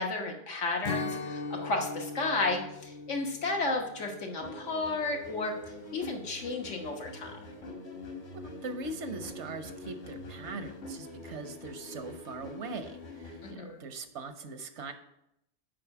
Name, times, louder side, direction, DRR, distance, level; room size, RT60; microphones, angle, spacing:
voice 1, 0.0-5.5 5.9-7.3 13.4-13.8, left 3 dB, 85° left, 2 dB, 1.6 m, -33 dB
Strum, 0.8-6.3, left 3 dB, 45° left, 0.6 m, -40 dB
sound 1, 4.4-13.5, left 1 dB, 60° left, 1.6 m, -44 dB
voice 2, 8.6-14.9, right 3 dB, 75° right, 8 dB, 1.1 m, -41 dB
7.6 x 5.3 x 5.8 m, 0.81 s
omnidirectional pair, 1.2 m